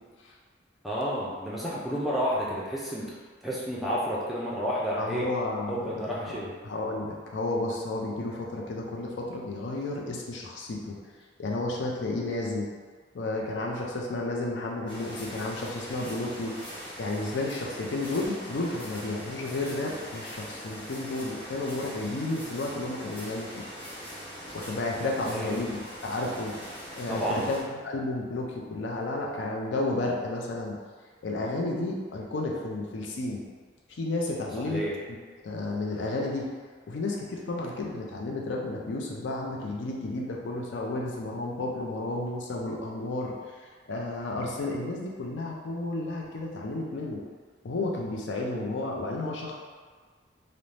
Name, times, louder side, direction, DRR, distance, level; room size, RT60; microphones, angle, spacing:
voice 1, 0.8-3.1 3.4-5.3 5.7-6.5 25.3-25.6 27.1-27.5 34.7-34.9, equal, ahead, -7 dB, 0.4 m, -30 dB
voice 2, 5.0-5.9 6.2-6.4 6.6-11.0 11.4-12.7 13.1-16.6 17.0-23.6 24.5-26.5 26.9-30.8 31.2-33.4 33.9-34.9 35.4-36.5 36.9-43.3 43.9-47.2 47.6-49.5, left 2 dB, 80° left, -1 dB, 0.5 m, -32 dB
sound 1, 14.9-27.6, equal, 25° left, 0.7 m, -42 dB
2.6 x 2.1 x 3.1 m, 1.5 s
head